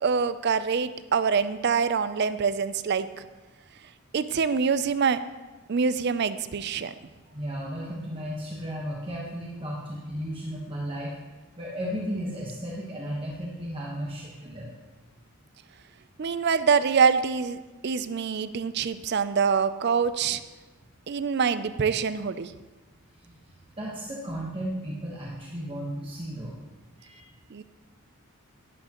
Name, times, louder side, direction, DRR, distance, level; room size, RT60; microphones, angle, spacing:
voice 1, 0.0-3.2 4.1-5.2 5.7-6.9 16.2-17.6 17.8-20.4 21.1-22.5 27.5-27.6, right 6 dB, 50° right, 13 dB, 0.4 m, -25 dB
voice 2, 7.3-11.1 11.6-14.8 23.2-23.4 23.8-26.6 27.0-27.2, equal, 25° right, -4 dB, 1.2 m, -34 dB
11.5 x 9.9 x 3.0 m, 1.2 s
head